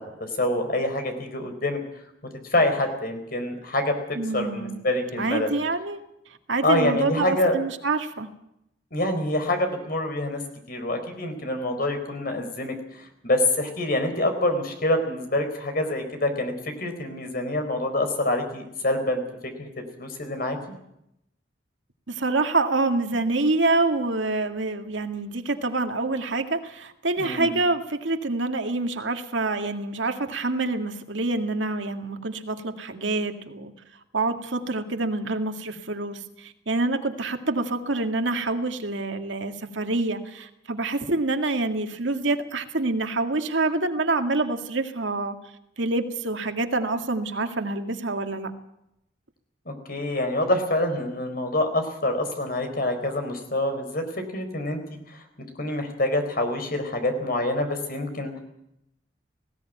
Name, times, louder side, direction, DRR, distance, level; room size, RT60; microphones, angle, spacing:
voice 1, 0.0-1.8 2.5-4.0 4.3-5.5 6.6-7.6 8.9-10.4 10.7-19.2 19.6-20.6 27.2-27.5 49.7-54.0 54.3-55.2 55.6-58.4, left 1 dB, 50° left, 6 dB, 4.1 m, -26 dB
voice 2, 4.2-4.8 5.2-6.0 6.5-8.3 22.1-33.7 34.1-45.4 45.8-48.5, right 2 dB, 85° right, 6 dB, 2.0 m, -26 dB
19.0 x 16.5 x 9.2 m, 0.82 s
head